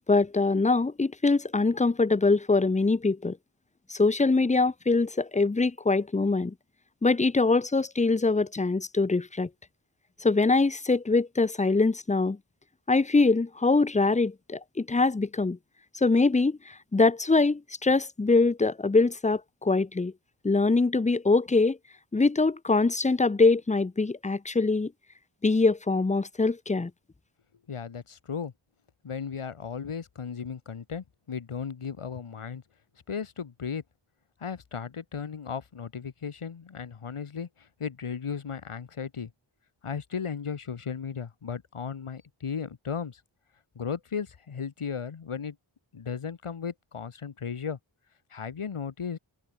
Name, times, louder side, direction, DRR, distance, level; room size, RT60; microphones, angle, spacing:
voice 1, 0.1-3.4 3.9-6.5 7.0-9.5 10.2-12.4 12.9-15.6 16.0-20.1 20.4-21.8 22.1-24.9 25.4-26.9, left 3 dB, 15° left, 0.5 m, -23 dB
voice 2, 27.7-28.5 29.0-32.6 33.1-33.8 34.4-39.3 39.8-43.2 43.7-45.6 45.9-47.8 48.3-49.2, left 6 dB, 85° left, 1.2 m, -35 dB
wide cardioid pair, 40°, 49 cm